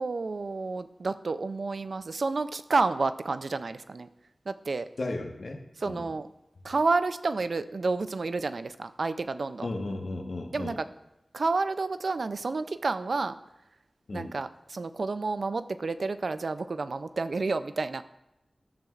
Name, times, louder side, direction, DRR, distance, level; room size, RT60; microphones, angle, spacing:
voice 1, 0.0-4.1 4.5-4.9 5.8-6.3 6.6-9.7 10.5-10.9 11.3-13.4 14.1-18.0, right 3 dB, 75° right, 12 dB, 0.4 m, -30 dB
voice 2, 5.0-6.1 9.6-10.8 14.1-14.4, left 2 dB, 70° left, 3 dB, 1.1 m, -35 dB
13.5 x 7.7 x 2.4 m, 0.91 s
wide cardioid pair, 70°, 0 cm